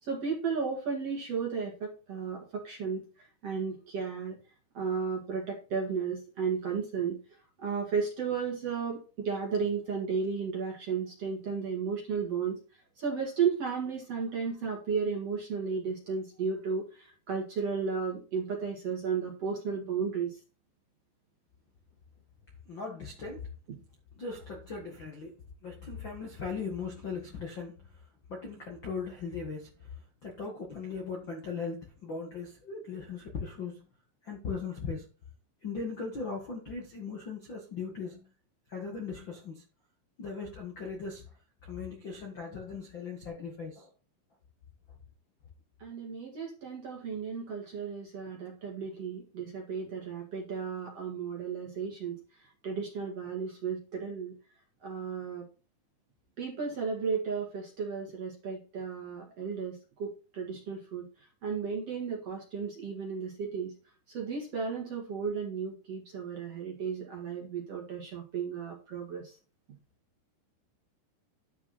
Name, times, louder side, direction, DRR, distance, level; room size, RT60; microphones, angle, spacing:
voice 1, 0.0-4.4 4.7-7.2 7.6-12.6 13.0-20.4 45.8-52.2 52.6-54.3 54.8-55.5 56.4-61.1 61.4-63.7 64.1-69.4, right 5 dB, 45° right, 2.2 m, -34 dB
voice 2, 22.7-23.5 24.2-25.3 25.6-27.8 28.3-29.7 30.2-33.8 34.2-35.0 35.6-38.3 38.7-39.6 40.2-41.2 41.6-43.9, left 5 dB, 55° left, 1.3 m, -38 dB
11.5 x 5.9 x 4.2 m
omnidirectional pair, 5.4 m